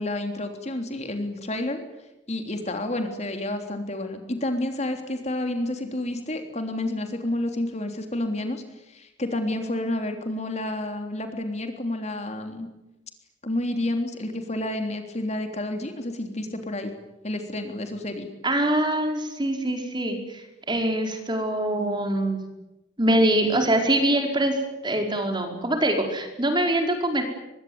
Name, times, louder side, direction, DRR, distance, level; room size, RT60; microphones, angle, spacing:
voice 1, 0.0-1.8 2.3-12.7 13.4-16.9 17.2-18.3, left 1 dB, 35° left, 5 dB, 3.4 m, -30 dB
voice 2, 18.4-22.4 23.0-24.6 24.8-27.2, right 1 dB, 25° right, 4 dB, 4.8 m, -24 dB
24.0 x 23.0 x 9.5 m, 0.98 s
head